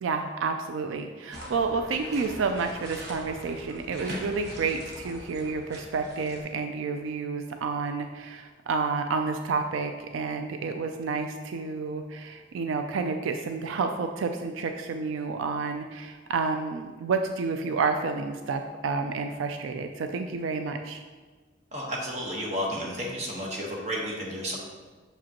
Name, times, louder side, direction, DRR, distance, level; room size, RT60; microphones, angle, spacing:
voice 1, 0.0-21.0, right 4 dB, 90° right, 6 dB, 0.4 m, -30 dB
sound 1, 1.3-6.4, equal, 55° right, 1.2 m, -41 dB
voice 2, 21.7-24.6, equal, 35° right, -2 dB, 1.2 m, -32 dB
6.6 x 5.1 x 2.9 m, 1.4 s
head